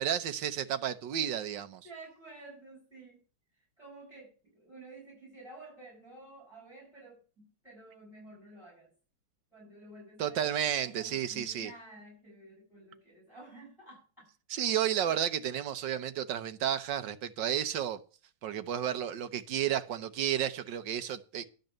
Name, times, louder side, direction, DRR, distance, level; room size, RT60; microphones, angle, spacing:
voice 1, 0.0-1.8 10.2-11.7 14.5-18.0 18.4-21.5, right 10 dB, 65° right, 1.4 m, -32 dB
voice 2, 1.8-3.2 3.8-8.9 9.5-10.5 10.8-14.3 15.0-15.2, right 2 dB, ahead, 7.0 m, -51 dB
12.0 x 5.3 x 8.8 m
omnidirectional pair, 2.3 m